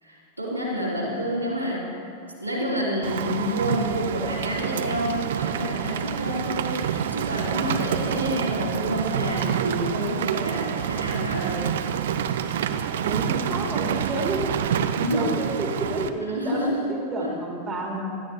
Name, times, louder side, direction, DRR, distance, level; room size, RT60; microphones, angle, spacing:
voice 1, 0.0-2.0 2.4-11.7 15.0-15.3 16.3-16.9 17.2-17.4, equal, 90° right, -6 dB, 2.7 m, -28 dB
Rain, 3.0-16.1, right 9 dB, 60° right, 0.6 m, -27 dB
voice 2, 3.4-3.8 13.0-14.5 14.9-18.1, right 1 dB, 20° right, 0 dB, 2.0 m, -30 dB
16.5 x 13.0 x 3.3 m, 2.9 s
figure-of-eight pair, 90°, 0 cm